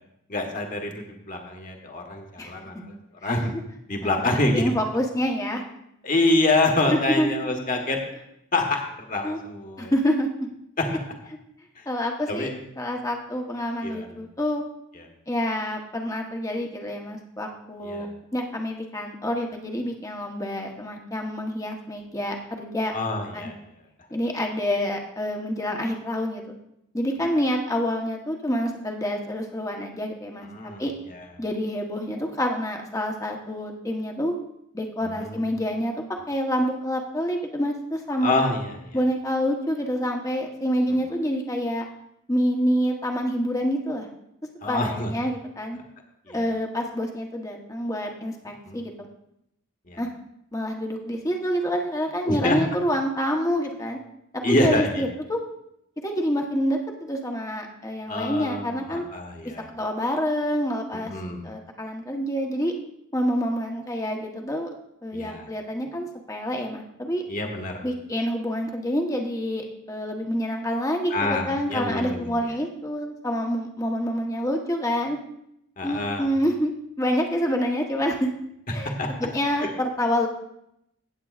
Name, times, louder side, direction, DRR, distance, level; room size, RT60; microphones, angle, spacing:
voice 1, 0.3-2.9 3.2-3.5 3.9-4.7 6.0-8.0 8.5-8.8 9.1-9.9 10.8-10.9 11.8-11.9 12.3-12.6 13.8-14.1 17.8-18.0 22.9-23.5 30.5-30.8 35.0-35.4 38.2-39.0 44.6-45.1 46.3-46.4 48.7-48.8 49.9-50.0 52.3-52.6 54.4-55.0 58.1-59.6 61.1-61.4 65.1-65.4 67.3-67.8 71.1-72.3 75.8-76.3 79.0-79.1 79.6-79.7, left 2 dB, 35° left, 2 dB, 1.4 m, -26 dB
voice 2, 3.2-3.6 4.0-4.2 4.5-5.6 6.9-7.4 9.2-9.4 9.8-10.5 11.9-12.5 12.8-14.6 15.3-18.1 18.3-22.9 23.3-23.5 24.1-26.5 26.9-30.5 30.8-30.9 31.4-34.3 34.7-35.9 36.3-38.5 38.9-41.8 42.3-44.1 44.7-45.8 46.3-48.9 50.0-50.1 50.5-54.0 54.3-55.4 56.0-59.0 59.4-61.1 61.4-62.7 63.1-64.7 65.0-67.2 67.8-75.2 75.8-78.3 78.7-78.9 79.2-80.3, equal, 15° left, 2 dB, 1.0 m, -27 dB
16.5 x 8.2 x 2.4 m, 0.80 s
head